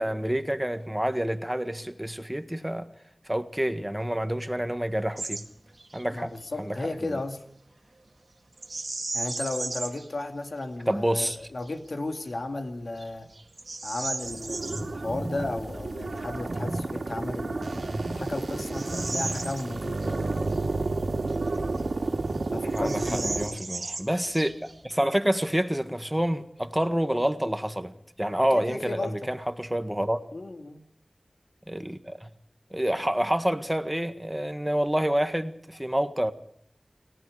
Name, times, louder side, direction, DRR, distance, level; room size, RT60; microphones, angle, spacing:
voice 1, 0.0-2.9 3.3-5.4 5.9-6.3 6.6-6.9 10.9-11.4 22.7-24.6 24.8-30.2 31.7-32.3 32.7-36.3, equal, 10° right, 1.6 m, -28 dB
Bird vocalization bird call bird song, 5.2-5.5 5.8-6.0 8.6-10.1 10.6-10.7 11.3-11.7 12.3-12.4 13.0-14.9 17.0-17.1 17.7-20.2 20.5-20.6 21.3-22.1 22.3-22.4 22.7-24.8, right 3 dB, 65° right, 2.0 m, -36 dB
voice 2, 6.1-7.4 9.1-13.3 13.8-20.3 22.5-23.5 28.5-29.3 30.3-30.8, left 2 dB, 75° left, 2.3 m, -34 dB
sound 1, 14.2-23.5, right 2 dB, 85° right, 2.5 m, -31 dB
30.0 x 18.5 x 4.9 m
wide cardioid pair, 55°, 0 cm